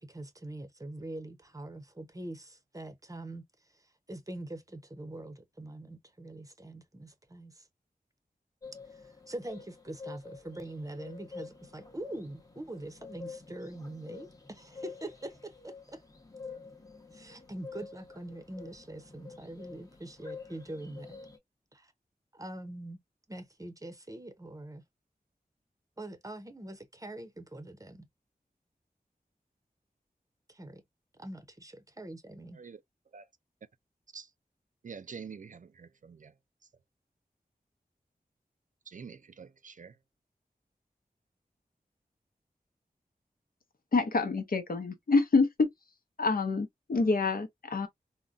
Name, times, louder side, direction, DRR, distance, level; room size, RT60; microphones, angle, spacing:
voice 1, 0.0-3.4 3.7-7.7 8.9-16.0 17.1-21.2 21.7-21.9 22.3-23.0 23.3-24.8 26.0-28.1 30.5-30.8 31.1-32.6, right 1 dB, 20° right, 0.7 m, -43 dB
sound 1, 8.6-21.4, left 5 dB, 20° left, 0.8 m, -48 dB
voice 2, 34.8-36.3 38.9-40.0, right 6 dB, 55° right, 0.4 m, -46 dB
voice 3, 43.9-45.7 46.2-47.9, left 3 dB, 65° left, 0.7 m, -27 dB
3.7 x 2.2 x 2.5 m
wide cardioid pair, 65°, 16 cm